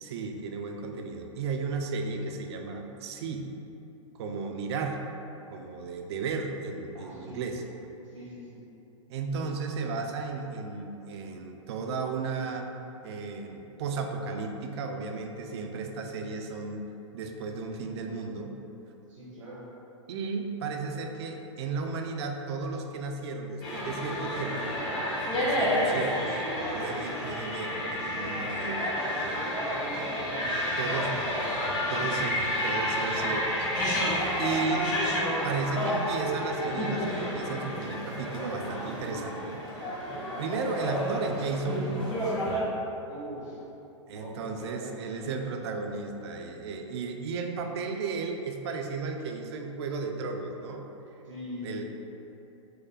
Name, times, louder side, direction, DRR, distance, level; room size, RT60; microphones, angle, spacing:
voice 1, 0.0-3.5 4.1-5.0 5.5-7.6 9.1-12.7 13.0-16.9 17.1-18.5 20.1-24.7 25.3-26.4 26.7-28.9 30.8-31.1 31.9-33.7 34.4-35.0 35.4-40.0 40.4-42.2 44.1-50.8 51.6-51.8, right 4 dB, 55° right, 4 dB, 0.5 m, -34 dB
voice 2, 6.9-7.5 8.0-8.6 19.1-19.6 29.6-31.2 31.5-32.5 43.1-43.6 44.1-45.2 51.2-51.8, equal, 85° right, -8 dB, 1.0 m, -42 dB
sound 1, 23.6-42.6, equal, 25° left, 1.4 m, -30 dB
4.8 x 2.1 x 4.8 m, 2.9 s
hypercardioid pair, 105°, 16 cm